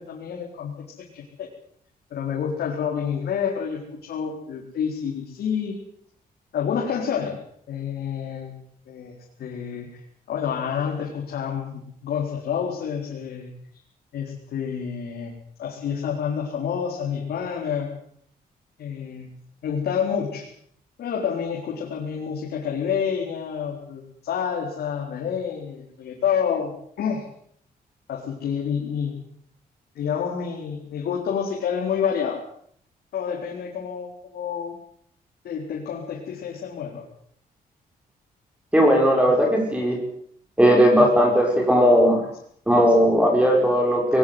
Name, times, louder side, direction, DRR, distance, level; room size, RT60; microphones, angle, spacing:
voice 1, 0.0-1.5 2.1-5.8 6.5-7.4 7.7-8.5 8.9-10.0 10.3-13.5 14.1-15.3 15.6-17.9 18.8-19.3 19.6-20.5 21.0-27.2 28.1-29.2 29.9-32.4 33.1-34.8 35.4-37.0 41.0-41.1, left 7 dB, 90° left, -1 dB, 4.3 m, -28 dB
voice 2, 38.7-40.0 40.6-42.2 42.7-44.2, equal, 10° right, 1 dB, 5.7 m, -17 dB
22.0 x 19.5 x 8.0 m, 0.64 s
wide cardioid pair, 150°, 16 cm